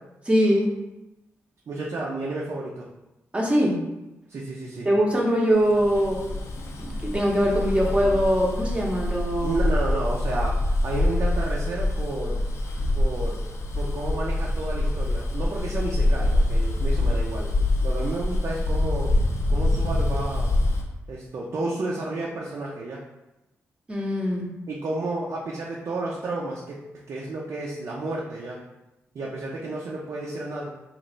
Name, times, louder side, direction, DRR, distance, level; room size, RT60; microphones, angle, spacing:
voice 1, 0.3-0.7 3.3-3.8 4.8-6.3 6.8-9.6 23.9-24.5, equal, 20° right, -2 dB, 0.8 m, -22 dB
voice 2, 1.7-2.9 4.3-4.9 9.4-12.4 13.0-13.4 13.8-17.5 17.8-19.2 19.5-20.6 21.1-23.0 24.7-26.8 27.1-28.6 29.1-30.7, right 2 dB, 60° right, -4 dB, 0.6 m, -31 dB
Bus, 5.7-20.8, left 1 dB, 65° left, 0.6 m, -25 dB
3.2 x 2.5 x 3.9 m, 0.97 s
cardioid pair, 90°, 5 cm